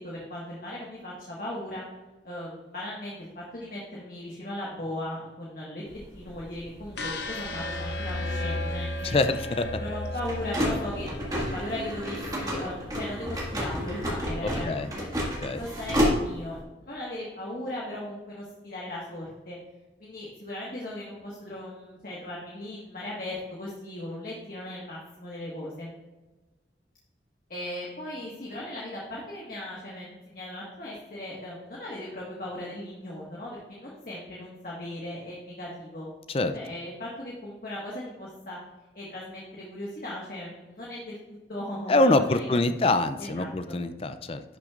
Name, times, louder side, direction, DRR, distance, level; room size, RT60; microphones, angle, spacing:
voice 1, 0.0-1.8 2.2-9.2 9.8-15.1 15.5-19.6 20.0-25.9 27.5-36.1 36.5-38.6 38.9-42.6 43.2-43.8, left 1 dB, 50° left, -5 dB, 1.6 m, -38 dB
sound 1, 5.9-16.6, equal, 20° right, 1.9 m, -32 dB
sound 2, 7.0-13.0, left 2 dB, 70° left, 0.7 m, -35 dB
voice 2, 9.0-9.7 14.4-14.9 15.4-15.6 36.3-36.5 41.9-44.4, left 2 dB, 30° left, 10 dB, 0.5 m, -25 dB
11.5 x 6.2 x 2.5 m, 1.1 s
head